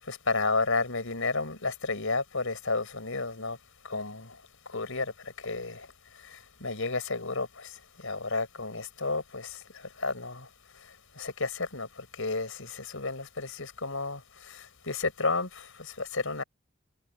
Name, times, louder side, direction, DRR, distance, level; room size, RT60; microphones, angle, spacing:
voice 1, 0.0-3.6 3.8-16.4, left 3 dB, 65° left, 5.4 m, -32 dB
head